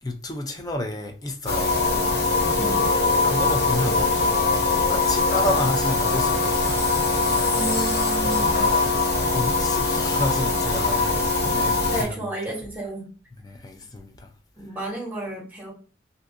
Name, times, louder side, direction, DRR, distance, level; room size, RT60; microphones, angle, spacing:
voice 1, 0.0-1.8 2.5-4.0 4.7-6.8 8.8-9.0 9.3-12.3 13.4-14.3, left 1 dB, 20° left, 0.4 m, -31 dB
sound 1, 1.5-12.0, left 3 dB, 65° left, 0.9 m, -22 dB
voice 2, 2.6-2.9 7.5-8.7 11.9-13.1 14.6-15.7, right 1 dB, 10° right, 1.2 m, -32 dB
2.7 x 2.7 x 3.4 m
head